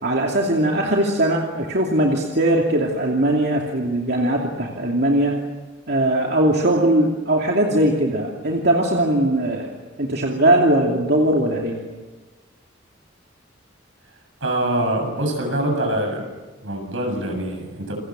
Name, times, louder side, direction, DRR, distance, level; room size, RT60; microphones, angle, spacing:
voice 1, 0.0-5.4 5.9-9.7 10.0-11.8, right 1 dB, 55° right, 0 dB, 2.8 m, -20 dB
voice 2, 14.4-16.3 16.6-17.9, right 1 dB, 80° right, 3 dB, 7.6 m, -24 dB
29.0 x 22.5 x 7.7 m, 1.2 s
head